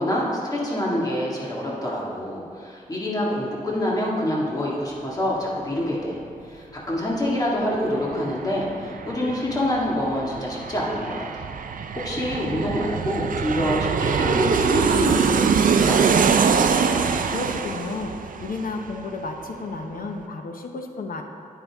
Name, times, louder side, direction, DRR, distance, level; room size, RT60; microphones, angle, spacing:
voice 1, 0.0-6.2 6.5-11.5 12.0-16.0, left 1 dB, 25° left, -5 dB, 1.9 m, -26 dB
Aircraft, 7.7-7.8 8.1-19.4 19.7-19.8, right 6 dB, 70° right, 0.4 m, -23 dB
voice 2, 17.0-21.2, left 3 dB, 85° left, 4 dB, 0.9 m, -32 dB
9.3 x 8.9 x 3.5 m, 2.6 s
wide cardioid pair, 140°, 14 cm